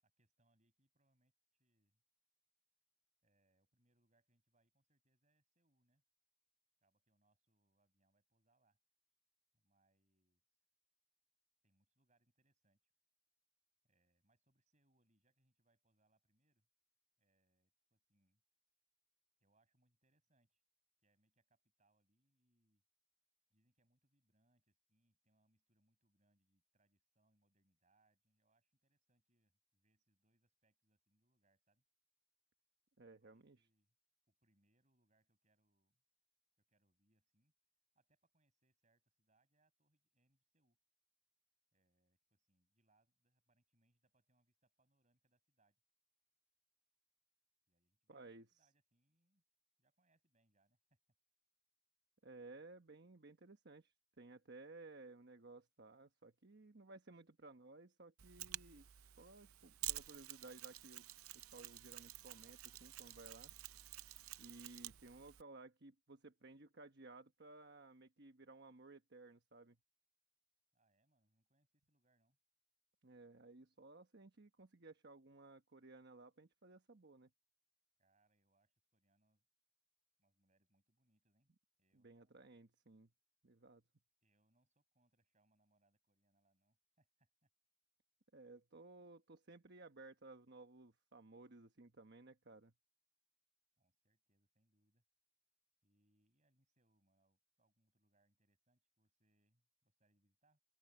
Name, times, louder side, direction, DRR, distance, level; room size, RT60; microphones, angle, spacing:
voice 1, 0.0-2.0 3.2-6.0 6.8-8.8 9.5-10.4 11.6-12.9 13.8-16.7 17.2-18.4 19.4-20.6 21.0-22.8 23.5-31.8 33.0-34.0 34.3-36.0 36.6-37.5 37.9-40.8 41.7-45.8 47.7-49.4 49.8-51.0 70.7-72.4 78.0-79.5 80.2-81.5 81.8-82.6 84.2-87.5 93.8-95.0 95.8-100.6, right 2 dB, 35° right, 7.1 m, -82 dB
voice 2, 33.0-33.7 48.1-48.7 52.2-58.9 59.2-61.0 61.3-63.5 64.4-69.8 73.0-77.3 81.9-83.1 83.4-83.8 88.3-92.7, right 2 dB, 50° right, 1.2 m, -58 dB
Mechanisms, 58.2-65.4, right 15 dB, 85° right, 0.6 m, -50 dB
open air
head